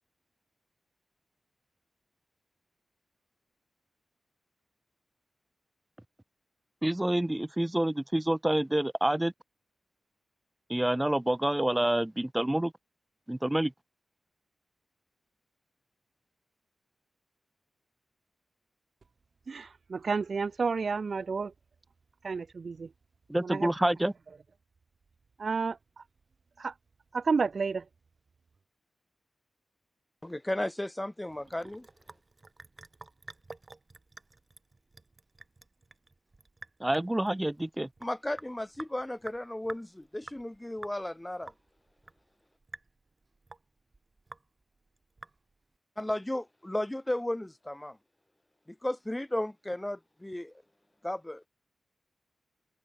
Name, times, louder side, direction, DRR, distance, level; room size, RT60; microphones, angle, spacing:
voice 1, 6.8-9.3 10.7-12.7 13.3-13.7 23.3-24.1 36.8-37.9, right 1 dB, 15° right, 0.4 m, -27 dB
voice 2, 19.5-21.5 22.2-22.9 23.4-23.7 25.4-25.8 26.6-26.7 27.1-27.8, right 4 dB, 60° right, 1.3 m, -30 dB
voice 3, 30.2-31.9 38.0-41.5 46.0-48.0 48.7-50.5 51.0-51.5, left 1 dB, 15° left, 1.9 m, -34 dB
Sink (filling or washing) / Drip, 31.3-45.8, right 3 dB, 40° right, 4.3 m, -51 dB
cardioid pair, 70°, 0 cm